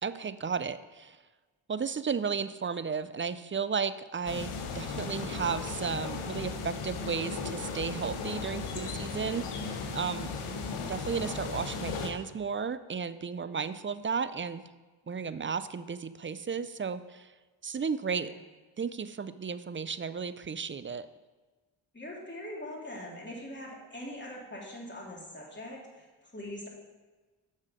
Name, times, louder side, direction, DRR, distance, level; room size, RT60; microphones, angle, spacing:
voice 1, 0.0-1.2 1.7-10.3 10.9-14.6 15.1-17.3 17.6-18.3 18.8-21.1, right 6 dB, 25° right, 14 dB, 0.4 m, -34 dB
sound 1, 4.3-12.1, left 4 dB, 90° left, 0.9 m, -36 dB
voice 2, 21.9-26.7, left 1 dB, 20° left, -3 dB, 3.0 m, -43 dB
7.4 x 6.4 x 5.1 m, 1.3 s
cardioid pair, 40°, 49 cm